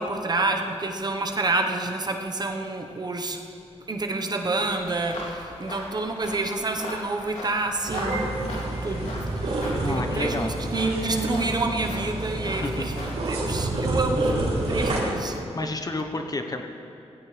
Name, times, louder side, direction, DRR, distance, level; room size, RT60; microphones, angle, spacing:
voice 1, 0.0-3.4 3.9-8.3 8.8-15.4, right 2 dB, 40° right, 3 dB, 1.2 m, -29 dB
sound 1, 4.6-13.1, left 1 dB, 80° left, 3.2 m, -39 dB
sound 2, 7.9-15.0, right 2 dB, 70° right, 3.0 m, -28 dB
voice 2, 9.8-10.6 12.6-12.9 15.5-16.6, left 2 dB, 35° left, 5 dB, 1.1 m, -30 dB
17.5 x 16.5 x 3.4 m, 2.6 s
cardioid pair, 85°, 11 cm